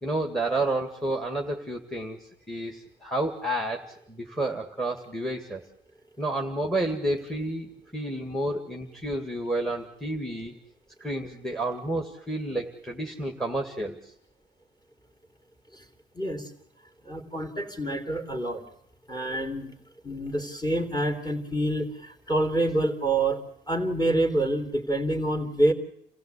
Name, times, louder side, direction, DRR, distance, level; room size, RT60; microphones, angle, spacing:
voice 1, 0.0-5.6 6.2-10.6 11.0-14.1, right 1 dB, ahead, 3 dB, 2.0 m, -30 dB
voice 2, 16.2-16.5 17.0-18.6 19.1-19.8 20.0-25.7, right 1 dB, 20° left, 4 dB, 3.5 m, -27 dB
28.0 x 15.5 x 8.3 m, 0.71 s
cardioid pair, 90°, 20 cm